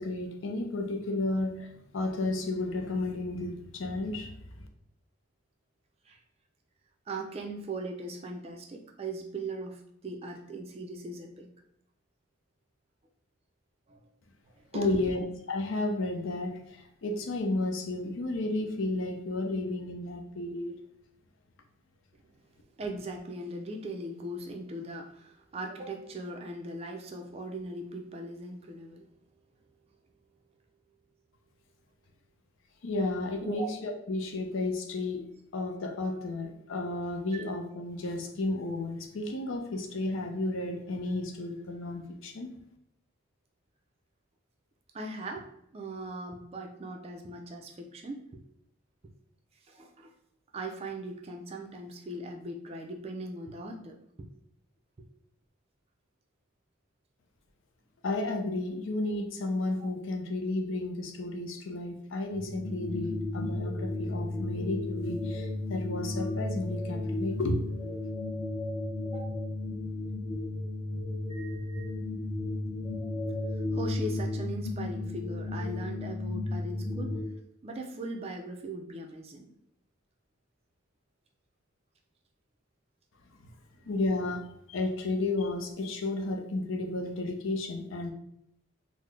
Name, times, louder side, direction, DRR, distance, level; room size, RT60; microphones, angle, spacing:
voice 1, 0.0-4.3 4.6-4.7 14.7-20.7 32.8-42.5 58.0-67.7 83.4-83.5 83.9-88.1, left 2 dB, 70° left, 3 dB, 0.5 m, -32 dB
voice 2, 7.1-11.5 13.9-14.1 14.4-15.1 22.8-29.1 33.4-33.7 37.3-37.4 44.9-48.4 49.7-50.1 50.5-54.3 55.0-55.1 59.8-59.9 69.1-69.4 73.5-77.2 77.6-79.5, right 2 dB, 30° right, 2 dB, 0.3 m, -39 dB
sound 1, 62.3-77.2, left 2 dB, 15° left, 0.6 m, -34 dB
3.8 x 2.0 x 3.2 m, 0.76 s
head